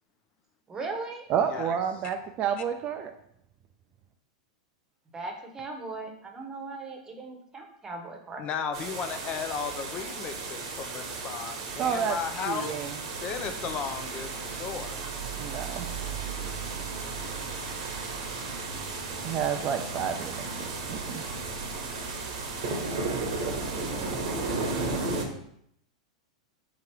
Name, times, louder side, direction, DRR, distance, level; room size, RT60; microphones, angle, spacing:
voice 1, 0.7-1.2 5.1-8.5, right 3 dB, 20° right, 2 dB, 0.9 m, -38 dB
voice 2, 1.3-3.1 11.8-12.2 12.5-13.0 15.4-15.9 19.2-21.2, right 8 dB, 35° right, 6 dB, 0.3 m, -30 dB
voice 3, 8.4-12.8 13.2-15.0, left 6 dB, 35° left, 9 dB, 0.4 m, -35 dB
sound 1, 8.7-25.2, right 3 dB, 65° right, 0.9 m, -34 dB
3.7 x 2.9 x 4.7 m, 0.71 s
hypercardioid pair, 120°, 3 cm